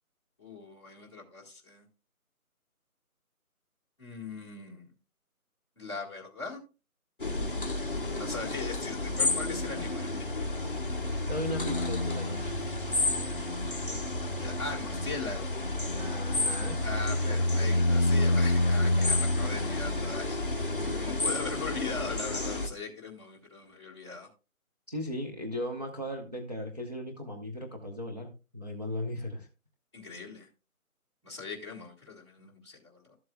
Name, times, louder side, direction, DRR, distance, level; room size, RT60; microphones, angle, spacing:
voice 1, 0.4-1.8 4.0-4.9 5.8-6.6 8.1-10.7 14.4-15.6 16.8-20.4 20.7-24.3 29.9-30.5 31.2-33.2, left 4 dB, 20° left, -5 dB, 1.6 m, -40 dB
sound 1, 7.2-22.7, left 2 dB, 35° left, 0.7 m, -29 dB
voice 2, 11.3-12.6 15.9-16.8 17.1-17.4 24.9-29.5, left 1 dB, 30° right, 1 dB, 0.8 m, -37 dB
13.5 x 7.7 x 2.2 m, 0.30 s
figure-of-eight pair, 170°, 44 cm